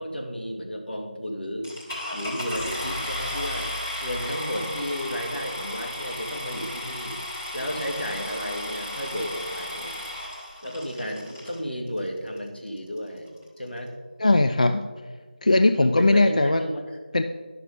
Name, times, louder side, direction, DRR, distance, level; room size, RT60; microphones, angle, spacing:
voice 1, 0.0-1.8 2.1-3.7 4.0-7.2 7.5-10.0 10.6-13.3 13.6-13.9 15.8-17.0, equal, 85° left, 1 dB, 2.3 m, -33 dB
sound 1, 1.6-11.6 12.4-12.5 13.0-13.1 13.3-13.6, left 1 dB, 20° left, 1.7 m, -34 dB
voice 2, 14.2-14.9 15.4-16.6 17.1-17.2, left 2 dB, 45° left, 7 dB, 0.4 m, -19 dB
11.5 x 6.2 x 5.1 m, 1.4 s
figure-of-eight pair, 170°, 5 cm